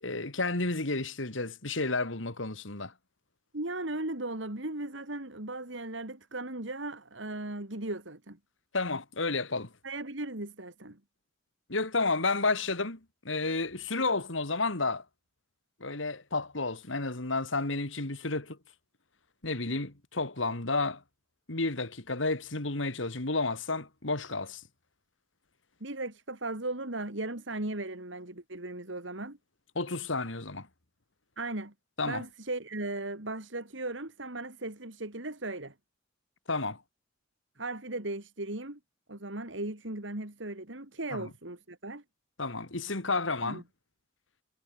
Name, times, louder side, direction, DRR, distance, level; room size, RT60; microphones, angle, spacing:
voice 1, 0.0-2.9 8.7-9.7 11.7-13.0 13.2-15.0 15.8-18.6 19.4-21.0 21.5-24.6 29.7-30.7 32.0-32.2 36.5-36.8 41.1-41.3 42.4-43.6, left 3 dB, 75° left, 2.9 m, -31 dB
voice 2, 3.5-8.4 9.8-11.0 25.8-29.4 31.4-31.7 32.0-35.7 37.6-38.8 39.1-42.0 43.4-43.6, right 2 dB, 65° right, 3.4 m, -37 dB
head